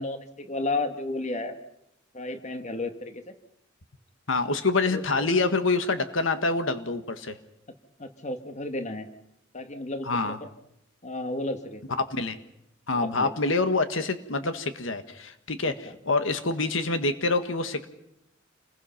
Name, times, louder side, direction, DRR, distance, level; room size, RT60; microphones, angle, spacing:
voice 1, 0.0-1.5 2.1-3.3 4.9-5.3 8.0-9.1 9.5-10.5 11.0-11.8 12.9-13.3 15.8-15.9, left 2 dB, 35° left, 8 dB, 1.7 m, -33 dB
voice 2, 4.3-7.4 10.0-10.4 12.1-12.4 12.9-17.9, left 3 dB, 80° left, 9 dB, 1.5 m, -26 dB
28.5 x 21.0 x 5.8 m, 0.79 s
head